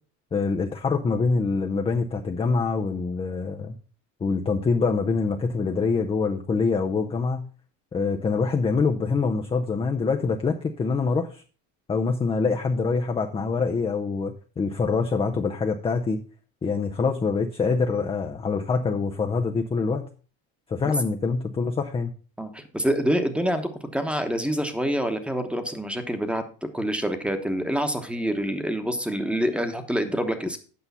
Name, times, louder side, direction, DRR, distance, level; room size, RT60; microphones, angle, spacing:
voice 1, 0.3-3.7 4.2-7.5 7.9-11.4 11.9-16.2 16.6-20.1 20.7-22.1, left 4 dB, 15° left, 4 dB, 0.5 m, -25 dB
voice 2, 22.4-26.4 26.7-30.6, equal, ahead, 8 dB, 1.0 m, -26 dB
8.4 x 5.5 x 5.4 m, 0.38 s
supercardioid pair, 120°, 45 cm